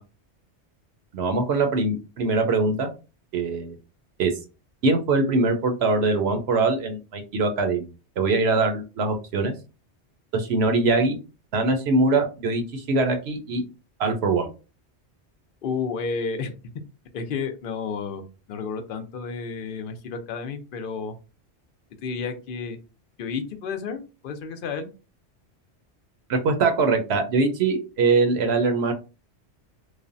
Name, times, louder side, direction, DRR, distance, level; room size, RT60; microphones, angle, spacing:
voice 1, 1.1-2.9 3.3-3.7 4.2-4.3 4.8-7.9 8.2-9.5 10.3-11.2 11.5-13.6 14.0-14.5 26.3-28.9, right 3 dB, 70° right, 6 dB, 0.8 m, -22 dB
voice 2, 15.6-16.5 17.1-18.2 18.5-21.1 22.0-22.8 23.2-24.9, left 5 dB, 60° left, 7 dB, 0.7 m, -31 dB
3.2 x 2.1 x 2.5 m, 0.31 s
omnidirectional pair, 1.2 m